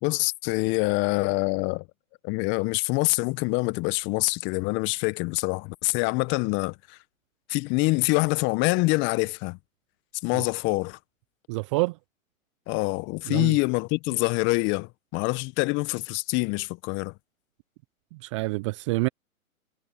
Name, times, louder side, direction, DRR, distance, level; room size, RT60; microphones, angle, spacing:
voice 1, 0.0-1.8 2.2-7.0 7.5-9.6 10.2-11.0 12.7-17.1, left 26 dB, 25° left, 1.4 m, -25 dB
voice 2, 11.5-12.0 13.3-13.6 18.2-19.1, right 24 dB, 20° right, 0.6 m, -27 dB
figure-of-eight pair, 125°, 42 cm